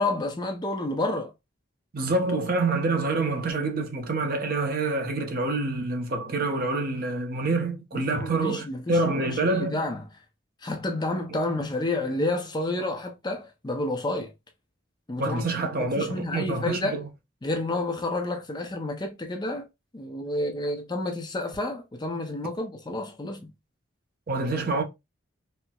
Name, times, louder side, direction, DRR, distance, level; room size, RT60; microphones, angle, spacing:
voice 1, 0.0-1.3 7.9-10.1 10.6-14.3 15.1-15.4 15.8-17.0 17.4-19.7 19.9-23.5, left 2 dB, 20° left, 0.4 m, -30 dB
voice 2, 1.9-9.8 11.3-11.4 15.2-17.1 24.3-24.8, right 2 dB, 45° right, 0.6 m, -27 dB
4.2 x 2.0 x 2.2 m
head